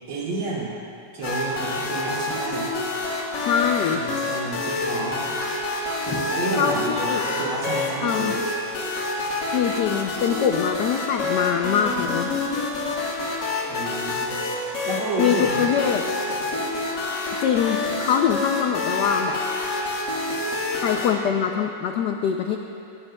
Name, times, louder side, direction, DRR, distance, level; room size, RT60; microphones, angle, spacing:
voice 1, 0.1-0.7 1.1-2.7 3.9-5.3 6.0-8.4 13.7-14.4 14.8-16.0, right 3 dB, 70° right, -6 dB, 3.3 m, -30 dB
sound 1, 1.2-21.1, left 3 dB, 55° left, 2.1 m, -27 dB
voice 2, 3.4-4.0 6.1-6.2 6.5-7.3 8.0-8.4 9.5-12.3 15.2-16.0 17.4-19.4 20.7-22.6, left 7 dB, 80° left, 4 dB, 0.9 m, -23 dB
17.5 x 15.5 x 2.2 m, 2.8 s
omnidirectional pair, 2.4 m